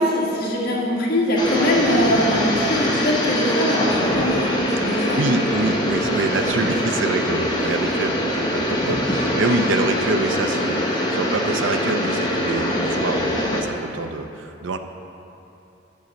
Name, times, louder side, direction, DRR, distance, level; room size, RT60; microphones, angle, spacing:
voice 1, 0.0-4.5 4.8-5.2, equal, 50° left, -5 dB, 1.7 m, -22 dB
sound 1, 1.4-13.6, left 1 dB, 25° left, 0.9 m, -23 dB
voice 2, 4.9-14.8, right 3 dB, 80° right, 7 dB, 0.5 m, -26 dB
10.5 x 4.1 x 6.4 m, 2.9 s
head